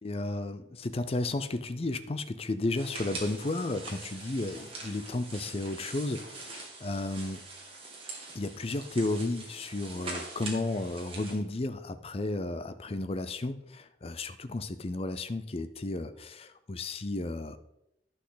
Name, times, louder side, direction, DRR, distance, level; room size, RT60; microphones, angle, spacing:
voice 1, 0.0-7.4 8.3-17.6, left 2 dB, 35° left, 12 dB, 0.5 m, -33 dB
sound 1, 2.7-11.3, right 3 dB, 35° right, 2.1 m, -43 dB
11.0 x 6.2 x 3.9 m, 0.82 s
head